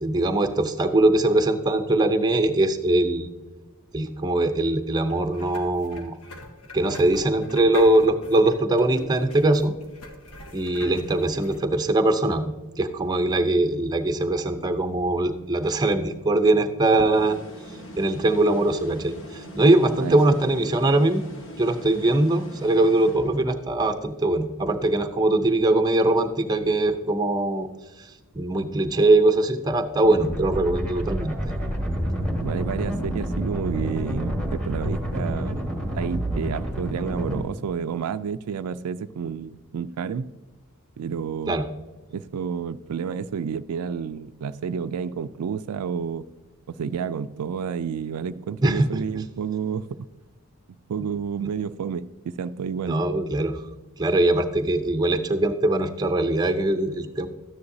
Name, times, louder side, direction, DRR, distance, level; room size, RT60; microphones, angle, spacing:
voice 1, 0.0-3.3 3.9-6.2 6.7-9.7 10.5-17.4 18.0-21.2 21.6-27.7 28.0-28.1 28.3-31.3 41.5-41.6 48.6-48.9 52.8-53.6 54.0-57.3, right 2 dB, 20° right, 0.6 m, -21 dB
sound 1, 5.1-11.6, left 2 dB, 85° left, 1.5 m, -44 dB
sound 2, 17.1-23.7, equal, 60° left, 1.5 m, -42 dB
sound 3, 30.0-37.4, equal, 5° left, 1.5 m, -28 dB
voice 2, 32.4-35.6 35.9-40.3 41.0-41.6 42.1-46.2 46.7-50.1 50.9-53.0, right 6 dB, 85° right, 0.4 m, -30 dB
13.0 x 9.7 x 2.7 m
head